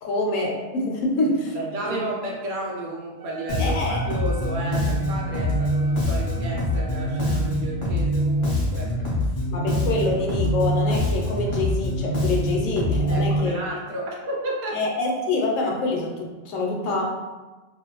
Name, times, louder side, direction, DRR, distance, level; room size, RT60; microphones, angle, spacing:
voice 1, 0.0-1.6 1.8-2.0 3.6-4.0 9.5-13.6 14.7-17.0, left 2 dB, 70° left, -1 dB, 0.9 m, -26 dB
voice 2, 1.5-9.0 9.2-9.4 13.1-14.8, right 1 dB, 85° right, -2 dB, 1.1 m, -32 dB
Wind instrument woodwind instrument, 3.2-7.4, equal, 65° right, 0.8 m, -43 dB
Bass guitar, 3.5-13.4, equal, 40° left, 0.4 m, -24 dB
2.4 x 2.2 x 2.9 m, 1.2 s
omnidirectional pair, 1.5 m